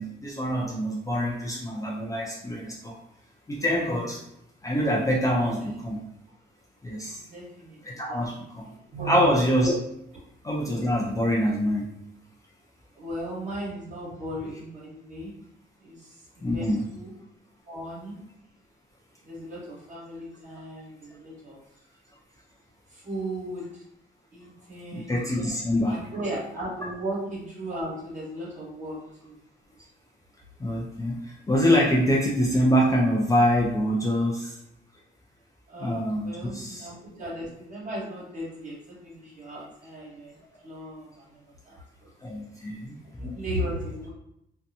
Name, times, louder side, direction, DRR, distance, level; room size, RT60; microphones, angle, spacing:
voice 1, 0.0-2.9 3.5-4.2 4.6-6.0 6.8-7.2 7.8-8.7 9.1-9.7 10.4-11.8 16.4-16.8 24.9-26.0 30.6-34.6 35.8-36.9 42.2-43.3, equal, 15° left, -3 dB, 0.4 m, -25 dB
voice 2, 7.2-9.3 13.0-15.3 15.8-17.1 17.7-18.2 19.2-21.6 22.9-23.8 24.3-25.2 25.8-29.4 35.7-40.4 40.6-42.1 43.2-44.1, right 1 dB, 40° right, -6 dB, 1.4 m, -36 dB
2.7 x 2.1 x 2.6 m, 0.78 s
cardioid pair, 90°, 20 cm